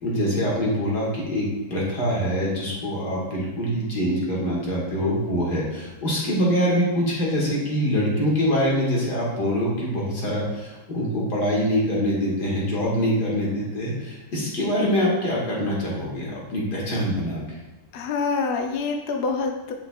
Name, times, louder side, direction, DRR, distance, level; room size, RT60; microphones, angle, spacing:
voice 1, 0.0-17.6, equal, 60° left, -4 dB, 2.2 m, -24 dB
voice 2, 17.9-19.7, left 4 dB, 80° left, 3 dB, 0.5 m, -26 dB
8.1 x 5.6 x 2.3 m, 1.2 s
omnidirectional pair, 2.0 m